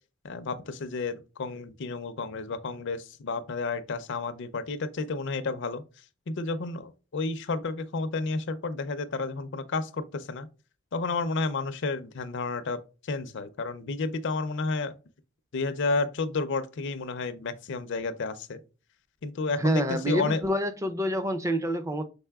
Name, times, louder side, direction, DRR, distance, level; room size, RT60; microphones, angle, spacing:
voice 1, 0.2-5.8 6.3-10.5 10.9-14.9 15.5-18.6 19.2-20.4, left 3 dB, 55° left, 0.5 m, -31 dB
voice 2, 19.6-22.0, equal, 15° right, 0.4 m, -27 dB
5.5 x 4.0 x 2.3 m
head